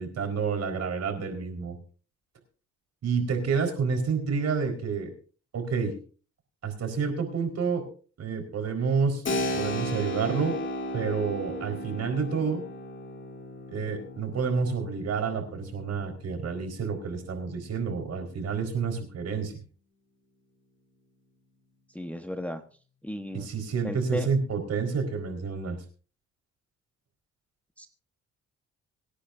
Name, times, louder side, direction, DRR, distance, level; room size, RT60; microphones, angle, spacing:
voice 1, 0.0-1.8 3.0-5.1 5.5-6.0 6.6-7.8 8.2-9.2 9.5-10.6 10.9-12.6 13.7-19.5 23.3-25.8, right 5 dB, 55° right, 5 dB, 4.6 m, -29 dB
Keyboard (musical), 9.2-17.6, equal, 40° left, 2.6 m, -35 dB
voice 2, 21.9-22.6 23.0-23.5 23.8-24.3 27.8-27.9, left 1 dB, 5° left, 5 dB, 1.2 m, -34 dB
25.0 x 9.9 x 2.6 m, 0.39 s
cardioid pair, 90°, 30 cm